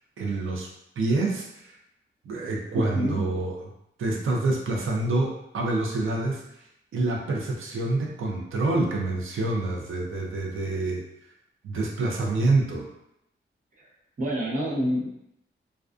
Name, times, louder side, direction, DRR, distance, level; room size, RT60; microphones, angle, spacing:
voice 1, 0.2-0.7 1.0-1.8 2.3-3.6 4.0-6.4 6.9-11.0 11.6-12.9, right 2 dB, 75° right, -1 dB, 0.5 m, -27 dB
voice 2, 2.7-3.2 14.2-15.1, equal, 40° right, -5 dB, 0.7 m, -27 dB
2.4 x 2.2 x 2.3 m, 0.81 s
wide cardioid pair, 165°, 21 cm